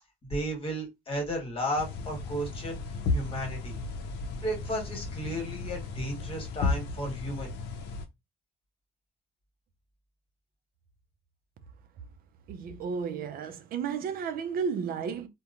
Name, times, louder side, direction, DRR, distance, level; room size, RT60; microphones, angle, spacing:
voice 1, 0.3-2.8 3.1-3.8 4.4-7.5, equal, 35° left, 1.4 m, -33 dB
sound 1, 1.8-8.1, left 3 dB, 80° left, 0.6 m, -34 dB
voice 2, 12.5-15.3, right 6 dB, 60° right, 0.5 m, -33 dB
2.9 x 2.1 x 2.4 m
cardioid pair, 110°, 17 cm